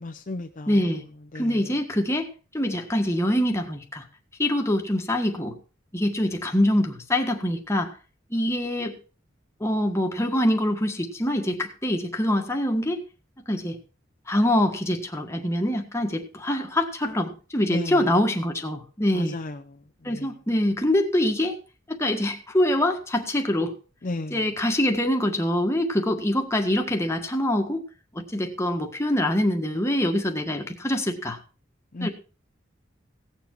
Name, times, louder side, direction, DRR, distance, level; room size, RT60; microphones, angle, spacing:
voice 1, 0.0-0.7 1.3-1.5 17.7-18.1 19.1-19.6 20.1-20.3 24.0-24.4 31.9-32.1, left 2 dB, 40° left, 0.7 m, -33 dB
voice 2, 0.7-1.0 1.3-2.3 2.5-4.0 4.4-5.5 5.9-7.9 8.3-8.9 9.6-13.0 13.5-13.8 14.3-19.4 20.0-21.6 21.9-23.7 24.3-27.8 28.3-31.4 32.0-32.1, left 1 dB, 15° left, 1.6 m, -24 dB
17.5 x 7.2 x 4.5 m
head